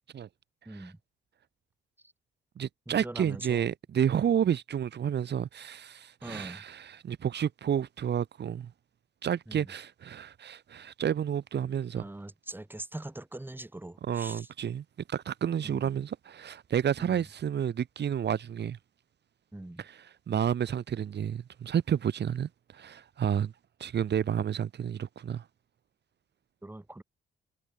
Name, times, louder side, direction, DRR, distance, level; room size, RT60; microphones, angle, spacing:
voice 1, 0.7-1.0 2.9-3.6 6.2-6.6 9.5-9.7 11.9-14.5 15.6-15.9 17.0-17.3 19.5-19.8 26.6-27.0, right 1 dB, 10° right, 5.7 m, -42 dB
voice 2, 2.6-8.7 9.2-12.1 14.1-18.8 19.8-23.5 23.8-25.4, right 9 dB, 60° right, 4.3 m, -30 dB
cardioid pair, 90°, 20 cm